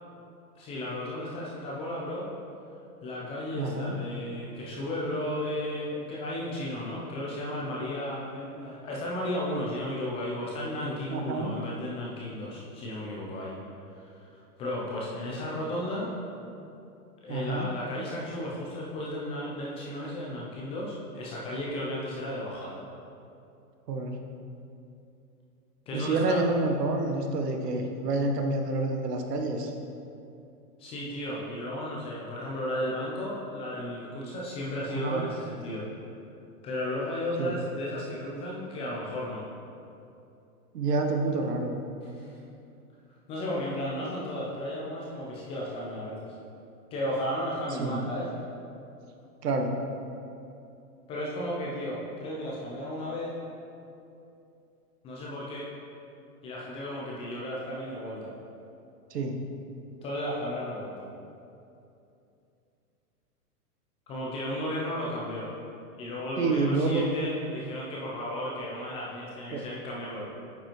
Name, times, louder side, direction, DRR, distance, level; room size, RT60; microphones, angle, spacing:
voice 1, 0.6-2.3 3.0-13.6 14.0-16.1 17.2-22.8 25.9-26.4 30.8-35.8 36.6-39.4 42.2-42.4 43.3-46.3 46.9-48.3 51.1-53.4 55.0-55.7 56.4-58.3 60.0-61.1 64.1-65.5 66.0-70.3, left 1 dB, 15° left, -4 dB, 0.4 m, -34 dB
voice 2, 3.5-4.0 11.1-11.5 17.3-17.7 23.9-24.2 25.9-29.7 34.9-35.3 37.4-37.5 40.7-41.7 47.8-48.0 49.4-49.7 59.1-59.4 66.4-67.1 69.5-69.6, right 3 dB, 80° right, 3 dB, 1.0 m, -28 dB
8.8 x 5.2 x 3.0 m, 2.7 s
hypercardioid pair, 115°, 47 cm